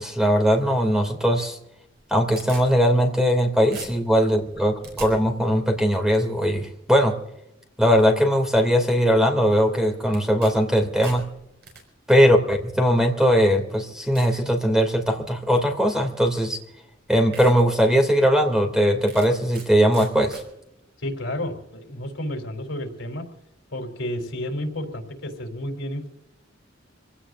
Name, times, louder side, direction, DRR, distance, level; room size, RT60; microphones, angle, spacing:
voice 1, 0.0-1.6 2.1-7.1 7.8-11.2 12.1-16.6 17.1-20.4, equal, 5° right, 4 dB, 2.6 m, -20 dB
sound 1, 1.9-3.4 3.7-5.1 10.1-10.5 10.8-11.8 12.7-12.8 13.4-13.5 14.1-14.4 14.9-15.2 16.4-16.5 16.9-17.0 17.3-17.5 18.0-18.1 19.1-19.7 19.9-20.4, right 4 dB, 60° right, 5.7 m, -41 dB
voice 2, 21.0-23.3 23.7-26.1, left 1 dB, 70° left, 4 dB, 3.7 m, -31 dB
26.5 x 17.0 x 2.6 m, 0.84 s
head